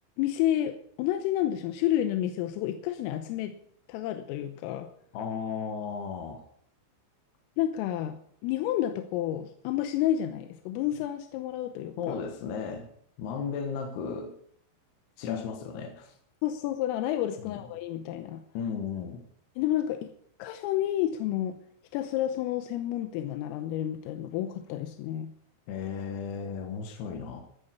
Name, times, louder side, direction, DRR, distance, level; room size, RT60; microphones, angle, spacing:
voice 1, 0.2-3.6 3.9-4.9 7.6-12.2 15.3-15.4 16.4-18.4 19.6-20.1 20.4-21.6 21.9-25.3, left 12 dB, 90° left, 7 dB, 3.5 m, -30 dB
voice 2, 5.1-6.4 12.0-12.9 13.2-14.3 15.2-16.1 17.4-17.6 18.5-19.2 25.7-27.4, left 6 dB, 65° left, 4 dB, 2.9 m, -35 dB
14.0 x 9.0 x 6.9 m, 0.65 s
omnidirectional pair, 5.9 m